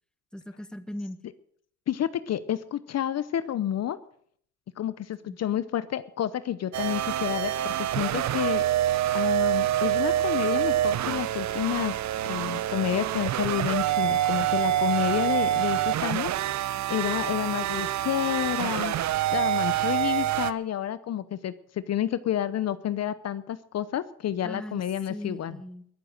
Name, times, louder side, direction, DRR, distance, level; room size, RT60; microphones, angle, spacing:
voice 1, 0.3-1.2 5.2-5.4 24.4-24.8 25.1-25.9, left 1 dB, 5° left, 11 dB, 1.4 m, -38 dB
voice 2, 1.9-4.0 4.8-8.7 9.1-12.0 12.2-16.3 16.9-19.1 19.3-25.6, left 11 dB, 60° left, 15 dB, 0.8 m, -29 dB
sound 1, 6.7-20.5, right 13 dB, 65° right, 0.7 m, -26 dB
22.0 x 7.6 x 6.6 m, 0.62 s
cardioid pair, 90°, 30 cm